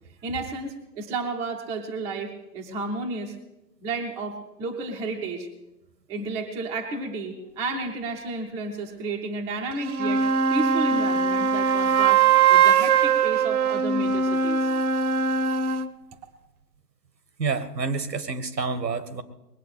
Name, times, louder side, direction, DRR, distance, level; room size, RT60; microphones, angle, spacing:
voice 1, 0.2-3.3 3.8-5.5 6.1-10.2 10.5-12.2 12.5-14.7, right 3 dB, 5° right, 1 dB, 0.6 m, -32 dB
sound 1, 9.7-15.9, right 6 dB, 60° right, 1.1 m, -21 dB
voice 2, 17.4-19.2, right 4 dB, 90° right, 12 dB, 1.9 m, -28 dB
20.5 x 8.4 x 8.3 m, 0.94 s
hypercardioid pair, 140°, 49 cm